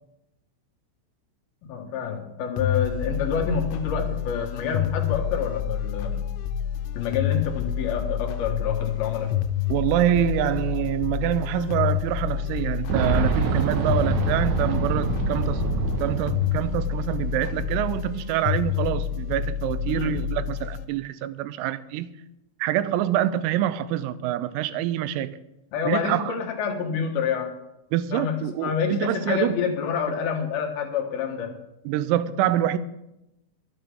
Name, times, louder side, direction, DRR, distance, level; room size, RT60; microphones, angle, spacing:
voice 1, 1.6-6.3 6.9-9.4 19.9-20.1 25.7-27.5 28.1-31.5, left 7 dB, 65° left, 2.7 m, -28 dB
sound 1, 2.6-20.9, left 10 dB, 90° left, 3.5 m, -28 dB
voice 2, 9.7-15.7 16.0-22.1 22.6-25.4 25.9-26.3 27.9-29.6 31.9-32.8, right 12 dB, 90° right, 3.4 m, -26 dB
Boom, 12.9-17.6 17.9-18.0 19.1-19.2, right 4 dB, 70° right, 3.8 m, -26 dB
23.0 x 9.0 x 3.6 m
omnidirectional pair, 5.9 m